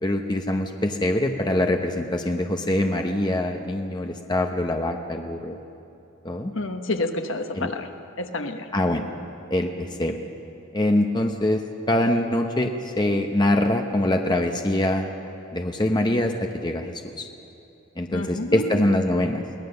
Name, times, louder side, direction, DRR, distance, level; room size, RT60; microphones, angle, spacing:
voice 1, 0.0-5.6 6.2-6.5 7.6-7.7 8.7-9.1 9.5-10.2 10.7-11.6 11.9-15.1 15.5-17.3 18.0-19.4, left 1 dB, 20° left, 4 dB, 0.9 m, -24 dB
voice 2, 6.5-7.9 8.2-8.7 18.1-18.9, left 2 dB, 60° left, 6 dB, 1.2 m, -29 dB
22.5 x 18.0 x 6.8 m, 2.8 s
head